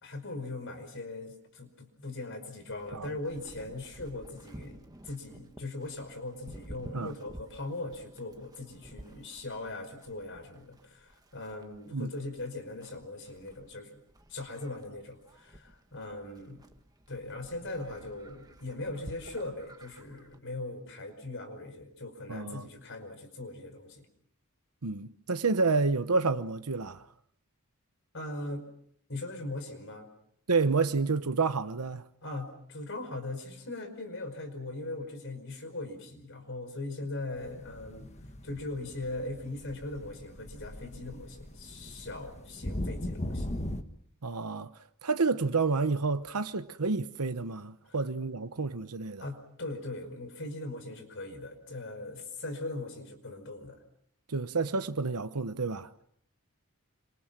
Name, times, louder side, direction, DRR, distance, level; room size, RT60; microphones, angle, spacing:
voice 1, 0.0-13.9 14.3-16.6 17.1-24.1 28.1-28.6 29.1-30.1 32.2-38.1 38.4-43.5 49.2-53.8, left 2 dB, 55° left, 5.2 m, -40 dB
Livestock farm animals working animals, 2.7-20.4, right 1 dB, 15° right, 1.6 m, -52 dB
voice 2, 22.3-22.7 24.8-27.1 30.5-32.0 44.2-44.7 45.0-49.2 54.3-55.9, right 4 dB, 90° right, 1.0 m, -29 dB
sound 1, 37.4-43.8, left 1 dB, 30° left, 1.5 m, -39 dB
27.5 x 25.5 x 6.1 m
head